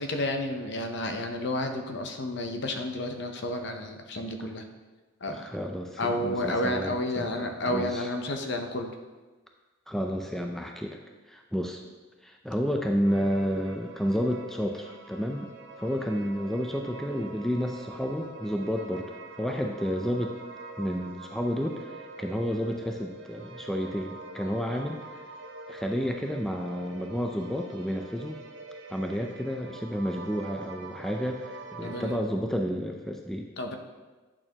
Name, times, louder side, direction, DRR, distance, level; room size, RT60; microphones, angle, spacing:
voice 1, 0.0-4.6 5.2-5.5 6.0-8.9 31.8-32.2 33.6-33.8, left 1 dB, 55° left, 5 dB, 0.7 m, -31 dB
voice 2, 5.3-8.1 9.9-11.0 11.3-11.8 12.2-15.5 15.8-20.4 20.8-25.2 25.7-28.4 28.9-33.5, equal, ahead, 2 dB, 0.4 m, -31 dB
sound 1, 13.0-32.2, right 2 dB, 60° right, 0.6 m, -45 dB
8.6 x 6.6 x 2.9 m, 1.2 s
head